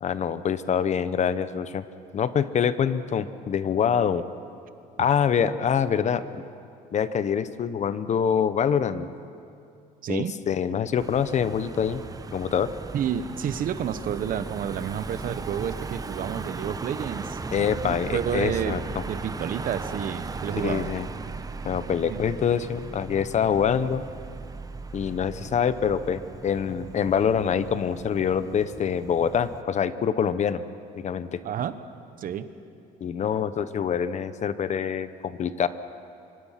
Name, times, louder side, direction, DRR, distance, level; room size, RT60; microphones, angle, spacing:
voice 1, 0.0-1.8 2.1-4.2 5.0-6.3 6.9-9.1 10.1-12.0 12.3-12.7 17.5-18.8 20.6-21.1 21.6-24.0 24.9-30.6 31.0-31.4 33.0-35.7, left 7 dB, 45° left, 13 dB, 0.9 m, -25 dB
voice 2, 10.0-10.3 12.9-17.4 17.8-20.9 22.1-22.2 31.4-31.8 32.2-32.5, right 8 dB, 55° right, 12 dB, 1.1 m, -30 dB
Car passing by / Engine, 11.0-29.6, right 4 dB, 20° right, 0.8 m, -37 dB
25.0 x 24.0 x 5.9 m, 2.5 s
cardioid pair, 110°, 17 cm